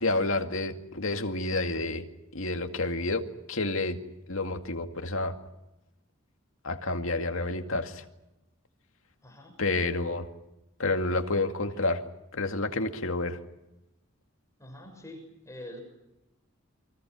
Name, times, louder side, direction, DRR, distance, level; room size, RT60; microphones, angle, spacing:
voice 1, 0.0-2.1 2.3-4.0 4.3-5.3 6.6-8.0 9.6-10.3 10.8-12.0 12.3-13.4, left 2 dB, 75° left, 6 dB, 2.2 m, -29 dB
voice 2, 9.2-9.6 14.6-15.8, left 1 dB, 15° left, 5 dB, 6.3 m, -45 dB
29.5 x 24.0 x 6.1 m, 0.94 s
head